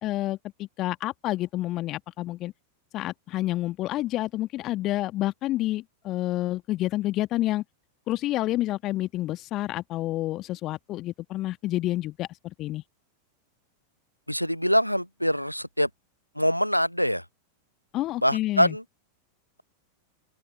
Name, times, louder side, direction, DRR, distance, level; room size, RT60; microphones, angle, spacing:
voice 1, 0.0-2.5 2.9-7.6 8.1-12.8 17.9-18.7, left 16 dB, 35° left, 1.5 m, -29 dB
voice 2, 14.3-15.9 16.3-17.2 18.2-18.8, equal, 90° left, 1.0 m, -24 dB
open air
figure-of-eight pair, 90°, 0 cm